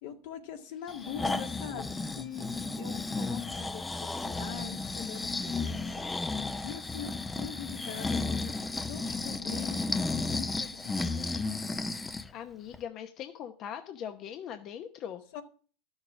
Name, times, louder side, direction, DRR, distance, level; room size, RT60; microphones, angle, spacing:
voice 1, 0.0-2.5 2.8-6.3 6.6-8.5 8.9-11.3 15.3-15.4, left 8 dB, 75° left, 1.8 m, -43 dB
Breathing, 0.9-12.3 12.7-12.8, left 3 dB, 15° left, 0.6 m, -33 dB
voice 2, 12.3-15.2, left 9 dB, 50° left, 0.9 m, -40 dB
12.0 x 6.5 x 6.1 m
supercardioid pair, 115°, 0 cm